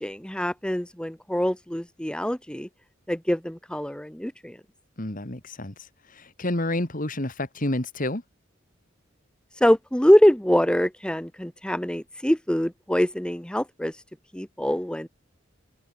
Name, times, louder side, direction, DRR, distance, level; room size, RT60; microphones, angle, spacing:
voice 1, 0.0-2.7 3.1-4.6 9.5-14.0 14.3-15.1, equal, 5° left, 0.9 m, -24 dB
voice 2, 5.0-8.2, left 1 dB, 40° left, 2.4 m, -30 dB
head